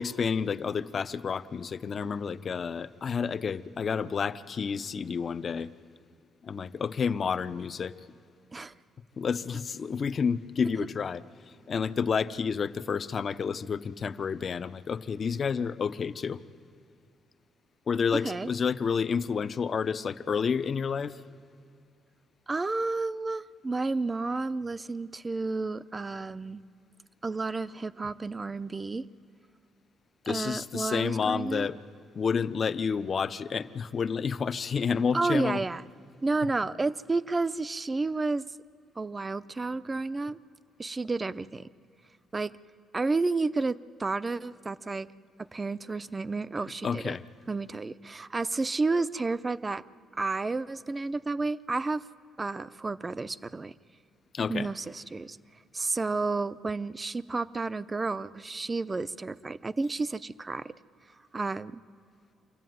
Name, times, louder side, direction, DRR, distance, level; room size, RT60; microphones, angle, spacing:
voice 1, 0.0-5.7 6.4-8.0 9.2-11.2 11.7-16.4 17.9-21.2 30.2-31.8 32.1-35.6 46.8-47.2 54.3-54.7, left 6 dB, 45° left, 13 dB, 0.7 m, -30 dB
voice 2, 18.1-18.5 22.5-26.6 27.2-29.1 30.3-31.7 35.1-35.8 36.2-38.5 39.0-40.4 40.8-41.7 42.3-42.5 42.9-45.1 45.5-47.2 47.5-49.8 50.1-52.0 52.4-53.7 54.5-55.4 55.7-60.7 61.3-61.8, right 3 dB, 25° right, 16 dB, 0.6 m, -31 dB
26.0 x 14.0 x 9.4 m, 2.3 s
cardioid pair, 90°, 0 cm